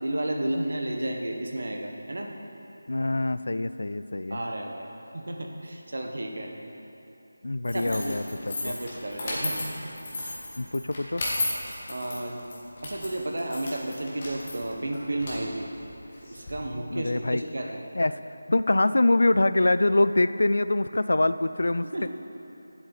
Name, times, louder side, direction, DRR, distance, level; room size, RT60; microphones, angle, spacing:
voice 1, 0.0-2.3 4.3-4.9 5.1-6.5 7.7-8.2 8.6-10.4 11.9-12.4 12.8-15.7 16.3-17.8 21.8-22.1, right 1 dB, 60° right, 2 dB, 1.2 m, -32 dB
voice 2, 2.9-4.4 7.4-8.7 10.6-11.2 16.9-17.4 18.0-18.2 18.5-22.1, left 2 dB, 70° left, 13 dB, 0.3 m, -24 dB
sound 1, 7.6-16.5, left 2 dB, 30° left, 1.6 m, -35 dB
11.0 x 7.7 x 4.1 m, 3.0 s
figure-of-eight pair, 175°, 0 cm